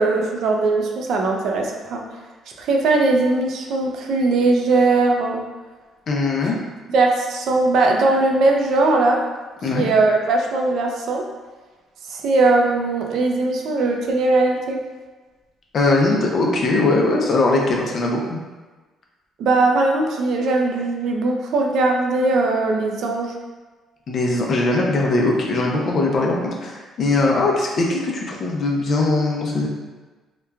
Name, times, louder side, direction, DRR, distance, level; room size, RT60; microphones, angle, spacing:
voice 1, 0.0-2.0 2.6-5.4 6.9-9.2 9.7-11.2 12.1-14.8 19.4-23.3, right 3 dB, 65° right, 1 dB, 0.4 m, -19 dB
voice 2, 6.1-6.6 9.6-9.8 15.7-18.4 24.1-29.7, left 2 dB, 45° left, -1 dB, 0.4 m, -20 dB
2.9 x 2.2 x 2.3 m, 1.3 s
cardioid pair, 135°, 0 cm